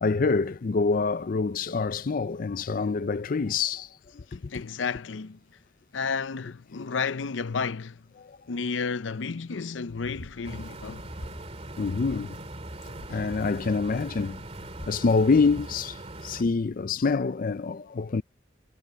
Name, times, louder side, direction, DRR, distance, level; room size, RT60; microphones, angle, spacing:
voice 1, 0.0-3.9 4.2-4.3 8.2-8.4 11.8-12.3 13.1-14.4 14.9-16.0 16.2-18.2, left 4 dB, 45° left, 0.4 m, -26 dB
voice 2, 4.3-5.4 5.9-8.1 8.5-11.1, left 5 dB, 90° left, 0.6 m, -32 dB
sound 1, 9.9-11.6 11.8-12.3 12.8-15.1, equal, 70° left, 3.9 m, -47 dB
sound 2, 10.4-16.4, right 1 dB, 35° right, 2.6 m, -41 dB
head